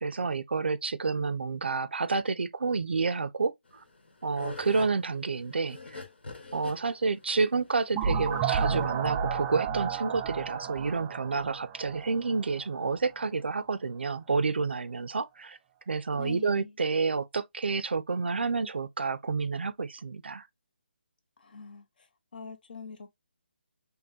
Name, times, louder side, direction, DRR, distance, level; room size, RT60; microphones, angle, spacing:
voice 1, 0.0-3.5 4.2-6.0 6.5-15.6 15.9-20.4, right 4 dB, 80° right, 0.5 m, -29 dB
sound 1, 3.7-8.8, left 3 dB, 80° left, 1.2 m, -44 dB
sound 2, 7.9-12.6, right 6 dB, 15° right, 0.4 m, -31 dB
voice 2, 16.1-16.7 21.4-22.1 22.3-23.2, left 5 dB, 55° left, 0.9 m, -43 dB
5.3 x 2.1 x 2.6 m
hypercardioid pair, 155°, 6 cm